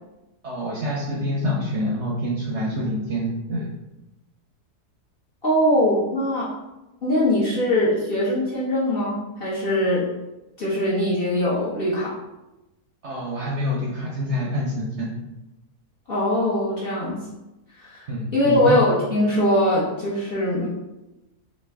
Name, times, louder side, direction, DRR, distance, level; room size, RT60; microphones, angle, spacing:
voice 1, 0.4-3.7 13.0-15.1 18.1-18.8, equal, 60° right, -4 dB, 0.7 m, -26 dB
voice 2, 5.4-6.5 7.0-10.1 10.6-12.2 16.1-17.2 17.8-18.0 18.3-20.7, left 1 dB, 50° left, -8 dB, 0.8 m, -22 dB
3.1 x 2.5 x 3.4 m, 0.98 s
omnidirectional pair, 1.7 m